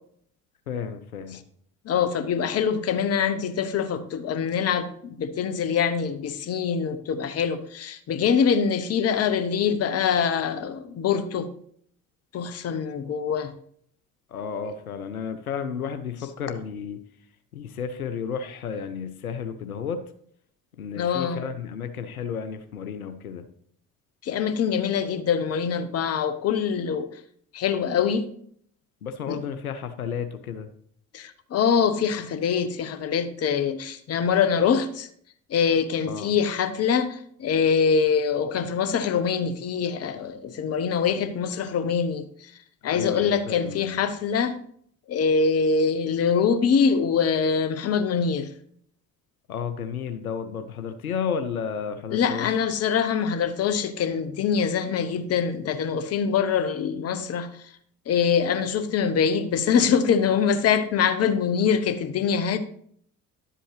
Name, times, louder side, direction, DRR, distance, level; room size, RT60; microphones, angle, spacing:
voice 1, 0.7-1.4 14.3-17.0 17.5-20.0 20.8-23.5 29.0-30.7 36.0-36.3 42.9-44.0 49.5-52.6, left 6 dB, 85° left, 9 dB, 0.6 m, -32 dB
voice 2, 1.9-11.5 12.3-13.5 14.6-14.7 20.9-21.4 24.2-27.1 27.5-28.2 29.3-29.4 31.1-35.1 35.5-42.2 42.8-44.5 45.1-48.5 52.1-57.5 58.1-62.6, left 6 dB, 35° left, 11 dB, 0.9 m, -24 dB
10.5 x 7.6 x 3.2 m, 0.64 s
figure-of-eight pair, 55°, 42 cm